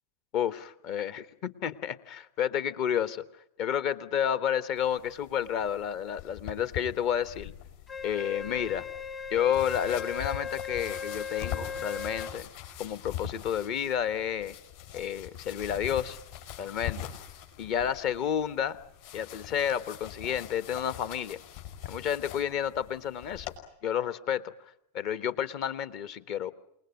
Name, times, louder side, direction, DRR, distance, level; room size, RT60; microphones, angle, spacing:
voice 1, 0.3-3.2 3.6-7.5 8.0-8.9 9.3-12.5 12.8-14.5 14.9-16.2 16.6-17.1 17.6-18.8 19.1-21.4 21.8-23.5 23.8-24.5 24.9-26.5, left 9 dB, 40° left, 15 dB, 1.1 m, -30 dB
sound 1, 4.8-23.6, left 10 dB, 60° left, 5.5 m, -43 dB
Wind instrument woodwind instrument, 7.9-12.3, left 5 dB, 20° left, 1.1 m, -38 dB
28.0 x 20.0 x 9.2 m, 0.77 s
figure-of-eight pair, 90°, 0 cm